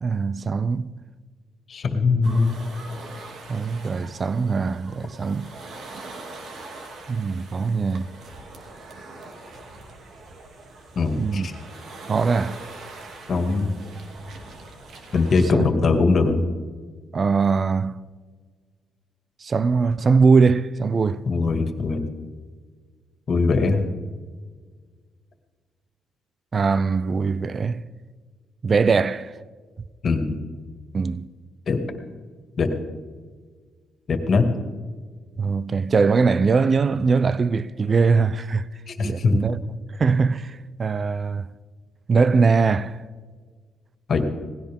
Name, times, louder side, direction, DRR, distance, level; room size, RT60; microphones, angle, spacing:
voice 1, 0.0-0.9 3.5-5.5 7.1-8.1 11.2-11.5 12.1-12.6 15.5-15.6 17.1-18.0 19.4-21.2 26.5-27.8 28.6-29.3 30.9-31.3 35.4-38.7 39.0-39.6 40.0-41.5 42.1-43.0, right 4 dB, 40° right, 0.6 m, -21 dB
voice 2, 1.7-2.5 11.0-11.5 13.3-13.8 15.1-16.4 21.3-22.1 23.3-23.9 30.0-30.4 31.7-31.8 32.6-32.7 34.1-34.5 38.9-39.4 44.1-44.3, left 4 dB, 50° left, 2.3 m, -21 dB
sound 1, 2.2-15.5, right 2 dB, 65° right, 2.7 m, -42 dB
19.0 x 16.5 x 3.7 m
cardioid pair, 90°, 0 cm